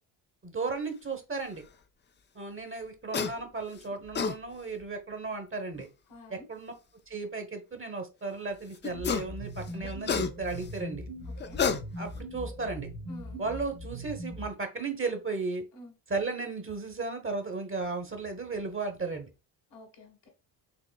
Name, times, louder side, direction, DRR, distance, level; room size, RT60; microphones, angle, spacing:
voice 1, 0.4-1.6 2.3-5.9 6.3-6.7 7.1-11.1 12.0-12.9 13.4-15.6 16.1-19.3, right 3 dB, 25° right, 1.0 m, -35 dB
sound 1, 3.1-3.3 3.9-4.4 5.8-5.9 8.8-9.3 9.7-10.7 11.4-12.2, left 6 dB, 25° left, 0.4 m, -30 dB
voice 2, 6.1-6.5 11.2-11.6 13.1-13.4 15.7-15.9 19.7-20.3, left 1 dB, 65° left, 1.6 m, -49 dB
sound 2, 8.8-14.5, equal, 85° right, 1.2 m, -40 dB
5.1 x 2.9 x 2.2 m
supercardioid pair, 50°, 48 cm